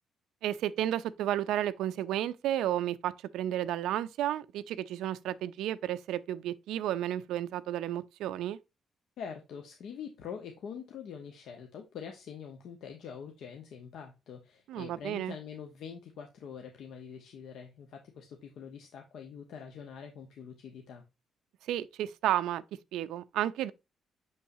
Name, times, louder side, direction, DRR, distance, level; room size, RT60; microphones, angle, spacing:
voice 1, 0.4-8.6 14.7-15.3 21.7-22.6 22.9-23.7, right 12 dB, 85° right, 0.4 m, -32 dB
voice 2, 9.2-21.0, left 7 dB, 75° left, 1.0 m, -45 dB
6.3 x 5.5 x 2.7 m
cardioid pair, 90°, 0 cm